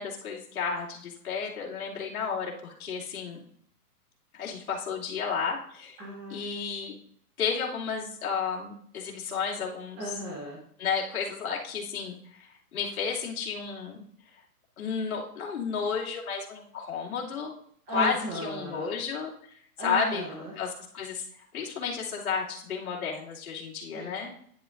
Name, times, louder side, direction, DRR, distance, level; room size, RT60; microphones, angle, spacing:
voice 1, 0.0-3.4 4.3-6.0 6.3-6.9 7.4-10.1 10.8-14.0 14.8-17.6 17.9-19.3 19.8-20.2 20.6-21.2 21.5-24.3, left 6 dB, 65° left, -3 dB, 2.7 m, -32 dB
voice 2, 6.0-6.5 10.0-10.6 17.9-18.9 19.8-20.5 23.9-24.1, right 1 dB, 15° right, -4 dB, 1.0 m, -36 dB
10.5 x 8.7 x 2.6 m, 0.64 s
hypercardioid pair, 165°, 46 cm